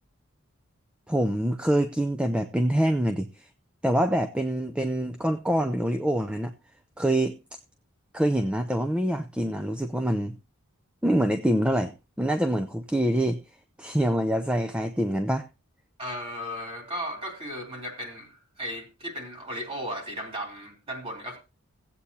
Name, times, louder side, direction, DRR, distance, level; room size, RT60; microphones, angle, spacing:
voice 1, 1.1-3.5 3.8-6.5 7.0-7.4 8.1-10.4 11.0-13.4 13.8-15.5, right 1 dB, 5° right, 0.5 m, -25 dB
voice 2, 16.0-21.4, equal, 25° right, 3.4 m, -36 dB
17.5 x 8.3 x 2.8 m
head